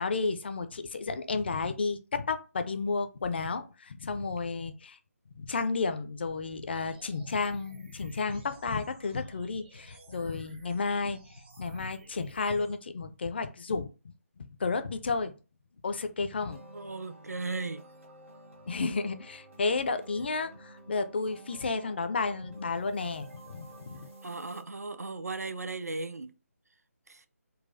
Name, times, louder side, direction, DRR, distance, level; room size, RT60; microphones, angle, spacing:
voice 1, 0.0-5.0 5.4-11.2 11.6-13.9 14.4-15.3 15.8-16.6 18.7-24.1, left 4 dB, 40° left, 0.4 m, -32 dB
sound 1, 6.7-12.7, right 2 dB, 40° right, 0.8 m, -55 dB
sound 2, 16.5-24.6, right 1 dB, 55° right, 1.1 m, -52 dB
voice 2, 16.7-17.8 24.2-26.3 27.1-27.3, right 3 dB, 80° right, 0.4 m, -36 dB
3.9 x 2.2 x 2.5 m
figure-of-eight pair, 150°, 8 cm